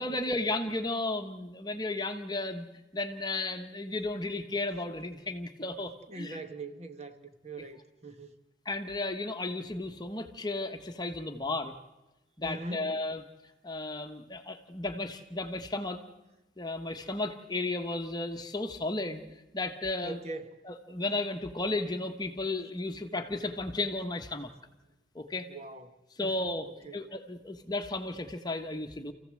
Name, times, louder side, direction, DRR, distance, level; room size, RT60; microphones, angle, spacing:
voice 1, 0.0-2.7 2.9-6.4 8.6-11.7 12.4-13.2 13.6-16.0 16.6-20.2 20.7-24.5 25.1-25.5 26.2-29.1, left 2 dB, 20° left, 1.2 m, -34 dB
voice 2, 6.1-8.3 12.4-12.9 20.0-20.5 25.4-26.0 26.2-26.3 26.8-27.0, right 2 dB, 35° right, 1.4 m, -41 dB
28.0 x 15.5 x 7.7 m
head